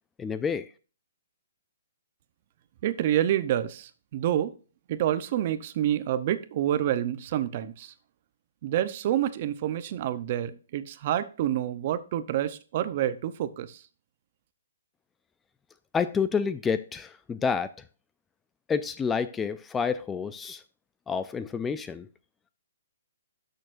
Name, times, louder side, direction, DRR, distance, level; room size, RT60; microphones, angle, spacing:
voice 1, 0.2-0.7 15.9-17.7 18.7-20.6 21.1-22.1, left 6 dB, 10° left, 13 dB, 0.3 m, -29 dB
voice 2, 2.8-4.5 4.9-7.9 8.6-13.8, right 11 dB, 40° right, 13 dB, 0.7 m, -28 dB
12.0 x 6.5 x 2.5 m, 0.36 s
hypercardioid pair, 160°, 0 cm